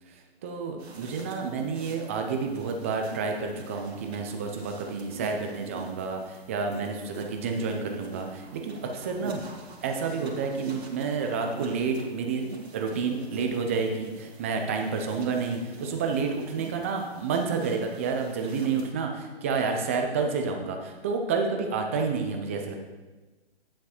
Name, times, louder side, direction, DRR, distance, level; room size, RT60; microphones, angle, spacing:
voice 1, 0.4-9.4 9.8-12.5 12.7-22.8, right 5 dB, 15° right, 3 dB, 0.4 m, -29 dB
sound 1, 0.8-18.9, right 3 dB, 85° right, 2.0 m, -45 dB
9.5 x 7.3 x 4.3 m, 1.2 s
hypercardioid pair, 145°, 31 cm